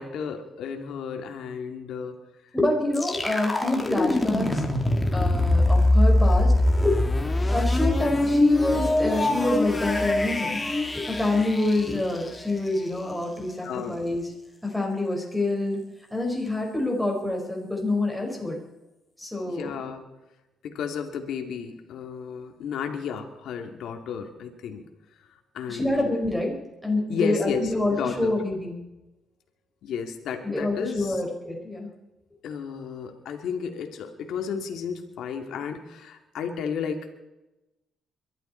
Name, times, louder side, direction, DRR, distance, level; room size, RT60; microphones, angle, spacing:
voice 1, 0.0-2.1 5.3-5.4 13.6-14.0 19.4-20.0 20.6-24.8 25.5-26.1 27.1-28.4 29.8-31.2 32.4-37.1, left 6 dB, 75° left, 4 dB, 2.3 m, -33 dB
voice 2, 2.5-4.7 5.1-6.9 7.5-10.6 11.1-14.2 14.6-15.8 16.1-18.6 19.2-19.7 25.7-26.5 26.8-28.7 30.4-31.9, left 2 dB, ahead, -1 dB, 5.4 m, -27 dB
sound 1, 2.9-12.8, left 1 dB, 20° left, 2.6 m, -23 dB
22.5 x 12.5 x 4.5 m, 0.97 s
cardioid pair, 90°, 0 cm